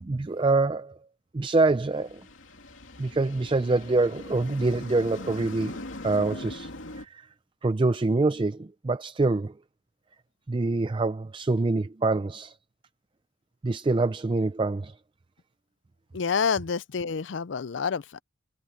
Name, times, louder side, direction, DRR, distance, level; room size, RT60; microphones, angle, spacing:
voice 1, 0.0-1.0 1.3-2.2 3.0-6.7 7.0-7.3 7.6-9.5 10.5-12.6 13.6-14.9, right 3 dB, 25° right, 0.4 m, -25 dB
sound 1, 1.8-7.0, left 2 dB, 90° left, 3.0 m, -41 dB
voice 2, 16.1-18.2, left 6 dB, 70° left, 0.5 m, -28 dB
head